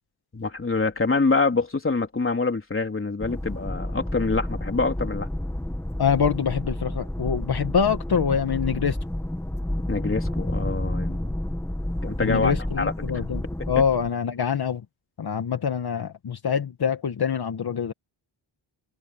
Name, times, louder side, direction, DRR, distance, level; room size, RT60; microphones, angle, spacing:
voice 1, 0.3-5.3 9.9-11.4 12.0-12.9, left 3 dB, 25° left, 3.8 m, -25 dB
sound 1, 3.2-14.1, left 1 dB, 5° left, 2.0 m, -30 dB
voice 2, 6.0-9.0 12.2-14.8 15.2-17.9, left 7 dB, 50° left, 1.9 m, -25 dB
open air
cardioid pair, 105°, 47 cm